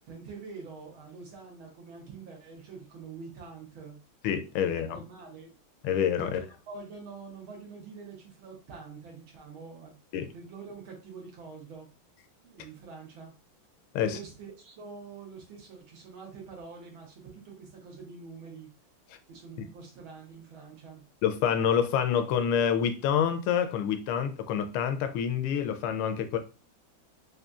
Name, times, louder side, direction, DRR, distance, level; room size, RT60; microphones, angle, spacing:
voice 1, 0.1-4.0 4.6-5.6 6.2-10.0 10.3-11.9 12.4-13.3 14.0-18.7 19.3-21.0, right 4 dB, 70° right, 2.0 m, -45 dB
voice 2, 4.2-5.0 5.8-6.4 10.1-10.3 13.9-14.2 21.2-26.4, left 8 dB, 80° left, 1.4 m, -27 dB
4.9 x 2.6 x 2.3 m
omnidirectional pair, 2.4 m